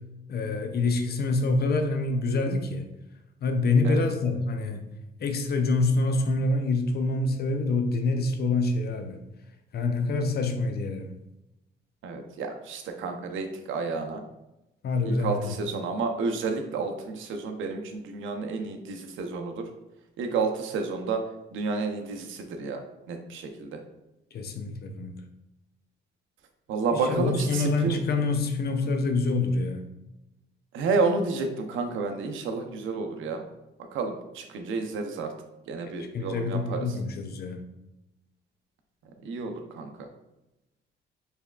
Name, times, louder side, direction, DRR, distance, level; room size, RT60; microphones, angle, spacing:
voice 1, 0.3-2.9 3.4-4.8 5.2-9.2 9.7-11.1 14.8-15.6 24.3-25.2 26.9-29.8 35.8-37.6, left 3 dB, 55° left, 6 dB, 0.6 m, -26 dB
voice 2, 12.0-14.2 15.1-19.5 20.2-21.2 21.5-22.8 23.1-23.8 26.7-28.0 30.7-33.4 33.9-35.3 35.7-36.8 39.2-39.9, right 4 dB, 80° right, 5 dB, 0.6 m, -30 dB
4.5 x 3.4 x 2.3 m, 0.94 s
cardioid pair, 90°, 20 cm